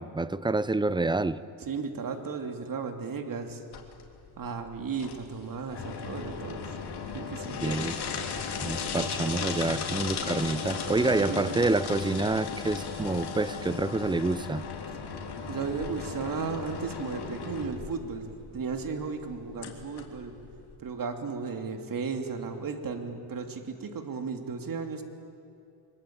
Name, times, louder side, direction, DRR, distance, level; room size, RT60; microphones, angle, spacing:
voice 1, 0.0-1.4 7.6-7.9 8.6-14.6, right 3 dB, 10° right, 0.6 m, -28 dB
voice 2, 1.7-3.6 4.4-6.8 7.1-7.8 11.0-11.4 15.5-20.3 20.8-25.0, right 5 dB, 40° right, 2.7 m, -35 dB
sound 1, 3.7-20.8, left 5 dB, 50° left, 3.4 m, -36 dB
24.5 x 21.0 x 8.8 m
cardioid pair, 105°, 49 cm